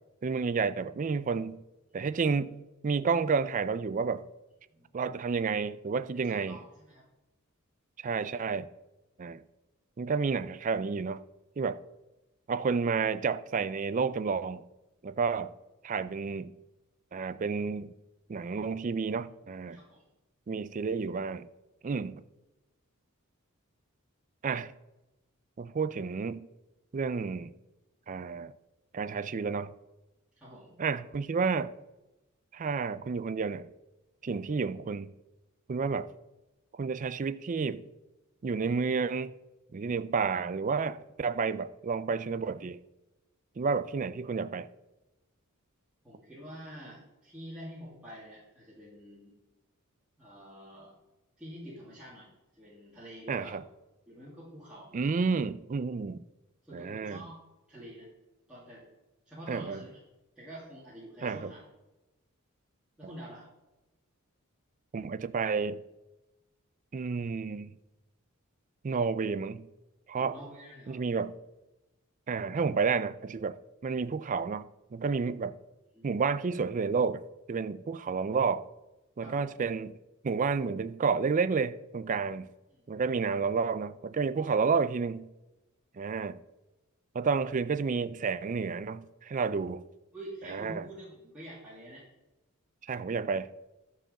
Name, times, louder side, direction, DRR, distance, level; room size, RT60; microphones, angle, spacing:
voice 1, 0.2-1.6 1.9-2.6 2.8-4.3 4.9-6.6 8.0-8.7 9.2-9.4 10.0-11.2 11.6-11.8 12.5-14.6 15.0-15.5 15.8-16.5 17.1-17.9 18.3-19.8 20.5-21.5 21.8-22.2 24.4-24.7 25.6-26.5 26.9-27.5 28.1-28.5 28.9-29.7 30.8-31.7 32.5-33.7 34.2-35.1 35.7-36.1 36.7-37.8 38.4-39.3 39.7-42.8 43.6-44.7 53.3-53.6 54.9-56.2 56.7-57.2 59.5-59.8 61.2-61.5 64.9-65.8 66.9-67.7 68.8-69.7 70.1-70.4 70.9-71.4 72.3-73.6 73.8-75.6 76.0-77.2 77.5-78.6 79.2-80.0 80.2-82.5 82.9-85.3 86.0-86.4 87.1-89.8 90.5-90.8 92.8-93.5, right 5 dB, 35° right, 0.4 m, -30 dB
voice 2, 6.2-7.1 19.7-20.0 30.4-30.8 46.0-49.3 50.2-50.9 51.4-53.6 54.1-55.1 56.6-57.4 57.7-58.1 58.5-58.8 59.3-60.0 60.4-61.7 63.0-63.5 70.1-71.0 75.9-76.3 79.2-79.5 82.7-82.9 90.1-92.0, equal, 5° right, 2.4 m, -47 dB
11.5 x 4.8 x 6.4 m
head